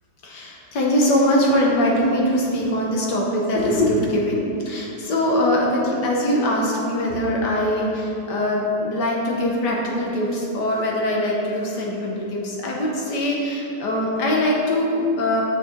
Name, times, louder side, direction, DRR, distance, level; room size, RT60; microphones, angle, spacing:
voice 1, 0.2-15.4, left 1 dB, 60° left, -3 dB, 1.2 m, -22 dB
6.3 x 5.7 x 3.7 m, 2.7 s
omnidirectional pair, 2.4 m